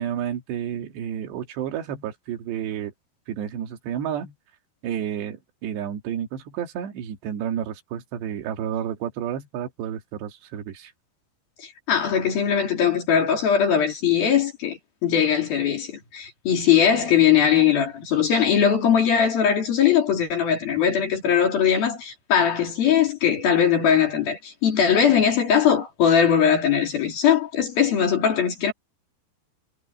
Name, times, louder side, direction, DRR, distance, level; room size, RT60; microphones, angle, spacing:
voice 1, 0.0-2.9 3.3-4.3 4.8-10.9, right 9 dB, 70° right, 4.2 m, -31 dB
voice 2, 11.6-28.7, left 8 dB, 55° left, 4.8 m, -20 dB
omnidirectional pair, 5.2 m